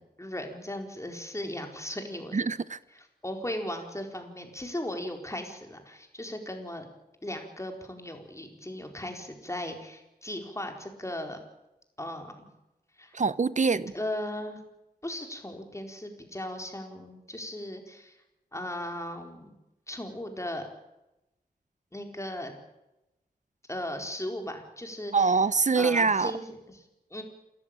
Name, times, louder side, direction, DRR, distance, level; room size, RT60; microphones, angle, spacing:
voice 1, 0.0-2.4 3.2-6.9 7.2-11.4 12.0-12.3 13.0-13.2 13.9-14.6 15.0-18.2 18.5-19.5 19.9-20.7 21.9-22.5 23.7-25.4 25.8-27.2, left 1 dB, 20° left, 4.3 m, -37 dB
voice 2, 2.3-2.8 13.1-13.9 25.1-26.3, right 4 dB, 50° right, 0.9 m, -24 dB
28.0 x 14.5 x 8.9 m
wide cardioid pair, 80°, 16 cm